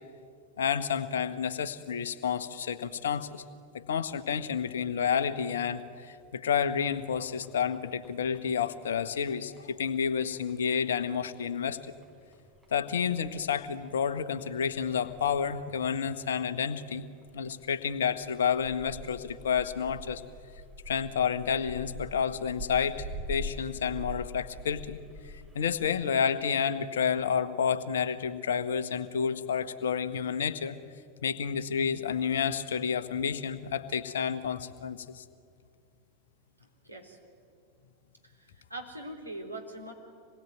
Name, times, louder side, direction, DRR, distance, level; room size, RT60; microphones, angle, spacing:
voice 1, 0.6-3.4 3.7-11.8 12.7-17.0 17.3-20.2 20.9-25.0 25.2-30.8 31.2-35.2, left 7 dB, 65° left, 12 dB, 1.3 m, -30 dB
sound 1, 6.7-26.4, equal, 10° right, 3.4 m, -46 dB
voice 2, 36.8-37.2 38.2-39.9, right 1 dB, 90° right, 0 dB, 3.6 m, -42 dB
26.5 x 21.0 x 9.4 m, 2.3 s
figure-of-eight pair, 85°, 0 cm